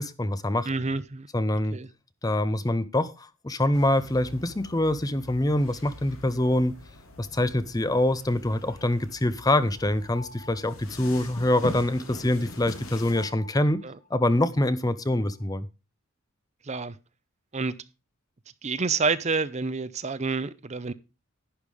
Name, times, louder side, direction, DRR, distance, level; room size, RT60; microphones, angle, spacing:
voice 1, 0.0-0.7 1.3-1.8 2.2-6.8 7.2-13.8 14.1-15.7, left 1 dB, 20° left, 0.7 m, -25 dB
voice 2, 0.7-1.3 1.7-1.9 13.8-13.9 16.7-16.9 17.5-17.7 18.6-20.9, right 4 dB, 35° right, 0.6 m, -28 dB
sound 1, 3.7-13.3, left 2 dB, 90° left, 3.4 m, -44 dB
sound 2, 8.6-15.4, left 3 dB, 35° left, 2.1 m, -52 dB
11.5 x 10.0 x 3.5 m
head